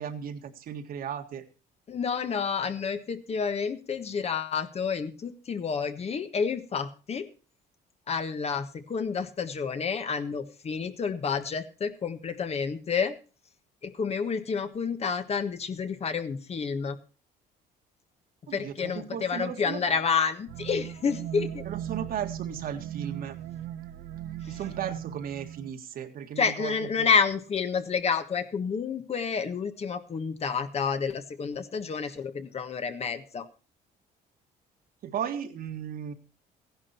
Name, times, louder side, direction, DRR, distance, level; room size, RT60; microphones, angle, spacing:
voice 1, 0.0-1.4 18.5-19.8 21.7-23.4 24.5-27.1 35.0-36.1, right 8 dB, 60° right, 6 dB, 1.9 m, -35 dB
voice 2, 1.9-7.3 8.1-13.1 13.8-17.0 18.5-21.6 24.4-24.6 26.4-33.5, left 5 dB, 40° left, 9 dB, 1.5 m, -29 dB
sound 1, 20.5-25.7, right 11 dB, 85° right, 1.2 m, -38 dB
15.0 x 11.0 x 4.4 m, 0.35 s
cardioid pair, 110°, 17 cm